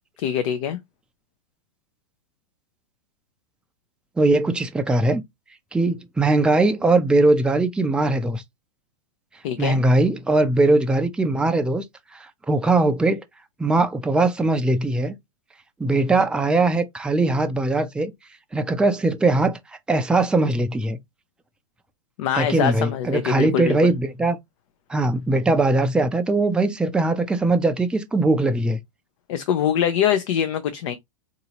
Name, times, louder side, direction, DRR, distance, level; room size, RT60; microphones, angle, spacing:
voice 1, 0.2-0.8 9.4-9.8 22.2-23.9 29.3-31.0, left 9 dB, 60° left, 0.6 m, -23 dB
voice 2, 4.2-5.2 5.7-8.4 9.6-11.8 12.1-13.2 13.6-15.2 15.8-18.1 18.5-19.6 19.9-21.0 22.3-24.4 24.9-28.8, right 2 dB, 5° right, 0.4 m, -20 dB
3.9 x 2.7 x 2.8 m
hypercardioid pair, 115°, 19 cm